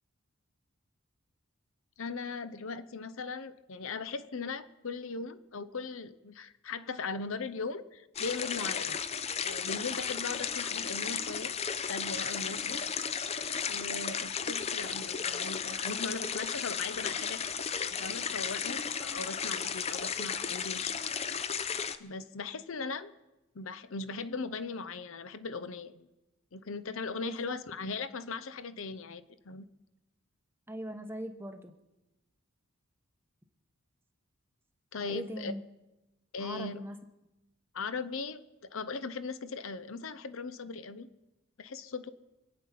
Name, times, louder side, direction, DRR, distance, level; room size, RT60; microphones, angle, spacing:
voice 1, 2.0-9.0 9.4-11.5 11.8-12.8 13.3-17.4 17.8-20.9 22.0-23.1 23.5-26.1 26.5-29.7 34.9-35.5 36.3-36.8 37.7-41.1 41.6-42.1, left 4 dB, 65° left, 13 dB, 0.7 m, -39 dB
sound 1, 8.2-22.0, left 6 dB, 30° left, 0.6 m, -34 dB
voice 2, 27.2-27.6 30.7-31.7 35.0-35.6 36.4-37.0, equal, 10° right, 7 dB, 0.9 m, -40 dB
25.0 x 8.5 x 5.8 m, 1.0 s
head